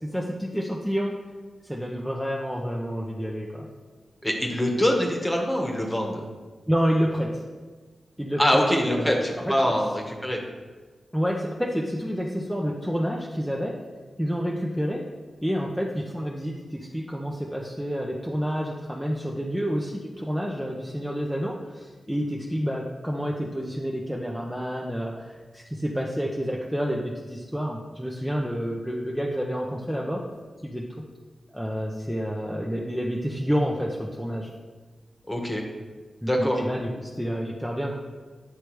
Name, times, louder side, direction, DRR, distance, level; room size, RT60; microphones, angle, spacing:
voice 1, 0.0-1.2 1.6-3.7 6.7-7.4 8.2-9.2 11.1-13.8 14.2-15.0 15.4-30.2 30.6-31.0 31.5-34.5 36.2-37.9, equal, ahead, -3 dB, 0.6 m, -29 dB
voice 2, 4.2-6.2 8.4-10.4 35.3-35.6 36.2-36.6, equal, 15° left, 0 dB, 1.2 m, -24 dB
9.6 x 3.2 x 3.1 m, 1.3 s
cardioid pair, 60°, 0 cm